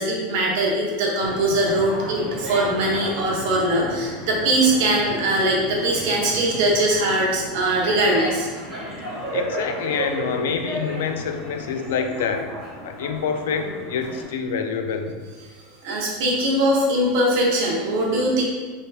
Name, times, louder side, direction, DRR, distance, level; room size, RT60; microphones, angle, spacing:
voice 1, 0.0-8.5 15.8-18.4, right 1 dB, 55° right, -2 dB, 0.7 m, -21 dB
sound 1, 1.2-14.2, right 1 dB, 15° right, 1.2 m, -33 dB
voice 2, 9.3-12.5 12.8-15.1, left 6 dB, 80° left, 6 dB, 0.3 m, -26 dB
3.3 x 2.8 x 2.3 m, 1.4 s
supercardioid pair, 170°, 0 cm